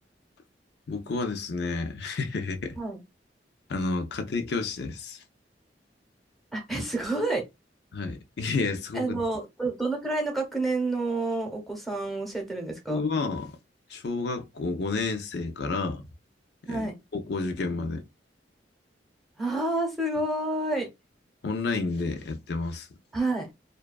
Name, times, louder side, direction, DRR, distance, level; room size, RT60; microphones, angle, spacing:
voice 1, 0.9-2.8 3.7-5.2 7.9-9.2 12.9-13.5 13.9-16.0 16.7-16.9 17.1-18.1 21.4-22.9, left 3 dB, 65° left, 0.5 m, -30 dB
voice 2, 6.5-7.4 8.9-13.0 16.6-16.9 19.4-20.9 23.1-23.5, right 2 dB, ahead, 0.9 m, -29 dB
2.6 x 2.2 x 2.3 m
head